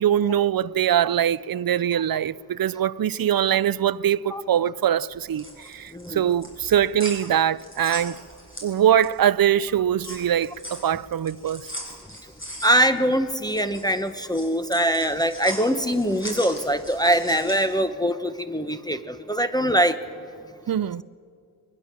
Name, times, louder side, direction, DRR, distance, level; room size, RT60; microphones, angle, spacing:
voice 1, 0.0-8.2 8.6-11.7 20.7-21.0, right 10 dB, 60° right, 0.5 m, -22 dB
sound 1, 5.1-9.3 9.6-17.8, equal, 30° left, 6.8 m, -39 dB
voice 2, 12.6-20.0, equal, 10° left, 0.9 m, -23 dB
22.5 x 21.0 x 7.4 m
wide cardioid pair, 50°, 40 cm